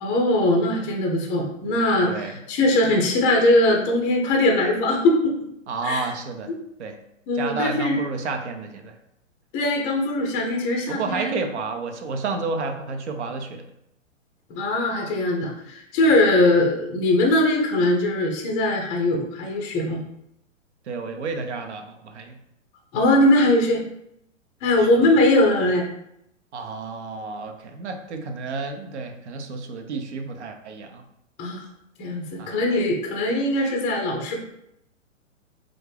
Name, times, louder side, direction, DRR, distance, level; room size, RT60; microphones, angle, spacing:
voice 1, 0.0-5.4 5.8-6.0 7.3-8.0 9.5-11.4 14.5-20.0 22.9-23.8 24.6-25.8 31.4-31.6 32.0-34.4, left 1 dB, 20° left, 0 dB, 0.5 m, -21 dB
voice 2, 2.1-2.4 5.7-6.5 6.8-7.0 7.3-8.9 10.9-13.6 16.1-16.2 20.9-22.4 24.8-24.9 26.5-31.0 32.4-32.6, right 4 dB, 60° right, 5 dB, 0.8 m, -31 dB
4.2 x 2.5 x 3.3 m, 0.78 s
figure-of-eight pair, 115°, 39 cm